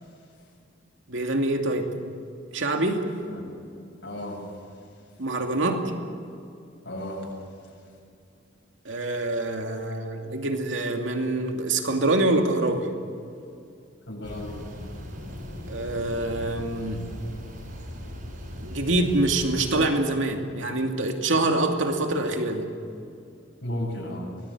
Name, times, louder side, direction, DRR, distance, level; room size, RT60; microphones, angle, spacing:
voice 1, 1.1-1.9 2.5-3.0 5.2-5.9 8.8-12.9 15.7-17.1 18.6-22.7, right 2 dB, 80° right, 3 dB, 2.5 m, -25 dB
voice 2, 4.0-4.4 6.8-7.3 14.1-14.6 23.6-24.3, left 1 dB, 70° left, -1 dB, 7.4 m, -33 dB
sound 1, 14.2-19.9, equal, 45° right, 6.9 m, -38 dB
24.0 x 18.5 x 8.4 m, 2.4 s
head